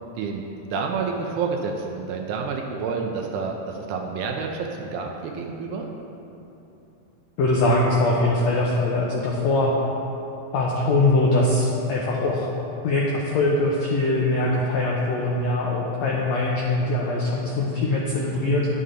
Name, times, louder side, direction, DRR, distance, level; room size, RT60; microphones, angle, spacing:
voice 1, 0.2-5.9, right 5 dB, 80° right, 1 dB, 1.9 m, -29 dB
voice 2, 7.4-9.8 10.5-12.5 12.8-18.7, left 2 dB, 85° left, -3 dB, 1.5 m, -22 dB
11.0 x 6.6 x 2.5 m, 2.9 s
omnidirectional pair, 3.8 m